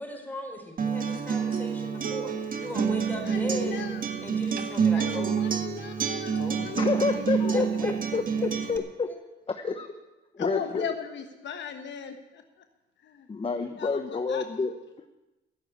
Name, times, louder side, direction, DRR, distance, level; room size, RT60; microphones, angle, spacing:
voice 1, 0.0-3.8 4.2-5.6 6.3-6.9 7.5-7.9 8.4-8.5, equal, 10° left, 1 dB, 4.8 m, -38 dB
Acoustic guitar, 0.8-8.8, right 6 dB, 45° right, 1.6 m, -28 dB
voice 2, 3.2-4.0 4.9-6.9 7.1-7.6 10.4-12.4 13.0-13.3 13.8-14.4, left 8 dB, 65° left, 6 dB, 1.3 m, -37 dB
voice 3, 6.8-9.1 9.5-9.9 10.3-10.8 13.3-14.7, left 4 dB, 25° left, 7 dB, 1.1 m, -29 dB
15.0 x 8.3 x 9.4 m, 1.1 s
cardioid pair, 90°, 20 cm